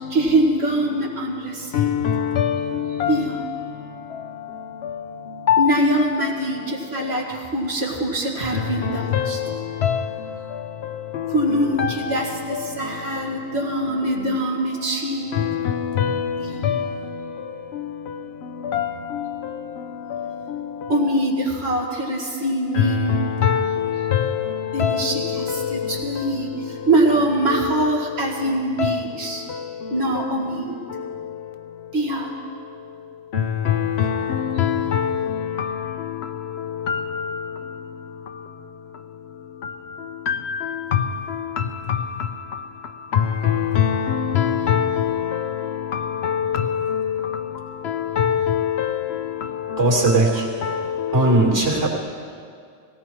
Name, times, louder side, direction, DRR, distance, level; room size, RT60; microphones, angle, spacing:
voice 1, 0.1-1.9 2.9-3.4 5.6-9.5 11.3-15.3 16.4-16.7 20.9-23.2 24.7-29.5 29.9-30.8 31.9-32.3 34.6-34.7, right 1 dB, 60° right, 2.3 m, -23 dB
voice 2, 34.6-35.0 43.8-44.0 44.4-44.8 48.2-48.6, left 9 dB, 65° left, 0.9 m, -19 dB
voice 3, 49.8-50.7 51.1-51.9, right 2 dB, 90° right, 2.8 m, -18 dB
17.5 x 17.0 x 4.5 m
omnidirectional pair, 1.2 m